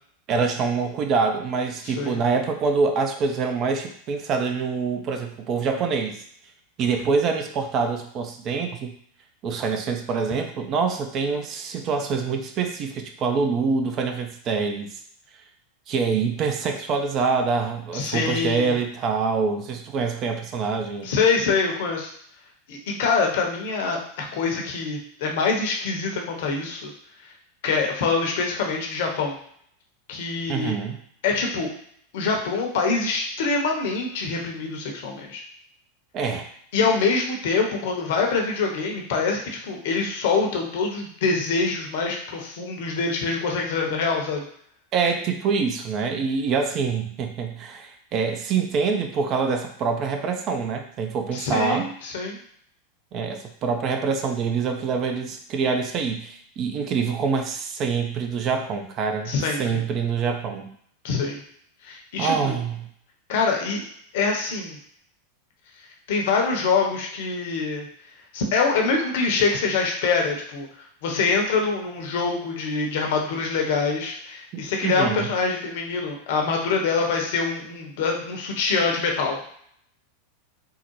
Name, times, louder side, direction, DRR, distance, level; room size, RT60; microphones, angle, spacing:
voice 1, 0.3-6.2 6.8-8.9 9.4-15.0 15.9-21.1 30.5-31.0 36.1-36.5 44.9-51.9 53.1-59.3 59.6-60.7 62.2-62.9 74.5-75.3, right 5 dB, 40° right, 5 dB, 0.5 m, -25 dB
voice 2, 1.8-2.2 17.9-18.8 21.0-22.1 22.7-26.9 27.2-27.3 27.6-29.4 30.1-30.7 31.2-31.7 32.1-35.4 36.7-44.5 51.3-52.4 59.3-59.8 61.0-61.4 61.8-62.6 63.3-63.8 64.1-64.8 66.1-67.9 68.3-70.7 71.0-79.4, left 4 dB, 60° left, 1 dB, 0.7 m, -25 dB
3.6 x 2.1 x 3.0 m, 0.65 s
figure-of-eight pair, 90°, 0 cm